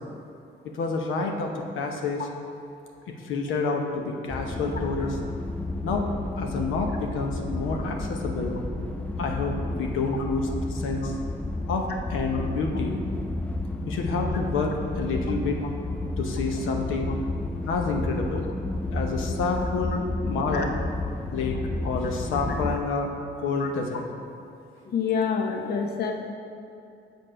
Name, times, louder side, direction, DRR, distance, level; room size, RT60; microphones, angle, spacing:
voice 1, 0.6-2.3 3.2-5.2 5.8-6.1 6.4-8.6 9.2-11.2 11.7-13.0 13.8-15.6 16.2-17.1 17.7-18.5 18.9-20.7 21.3-23.1 23.4-24.0, left 3 dB, 85° left, 2 dB, 0.8 m, -28 dB
sound 1, 4.3-22.8, left 2 dB, 5° left, 0.4 m, -31 dB
voice 2, 24.9-26.1, left 6 dB, 55° left, 3 dB, 0.8 m, -27 dB
6.7 x 6.1 x 5.0 m, 2.6 s
cardioid pair, 90°, 20 cm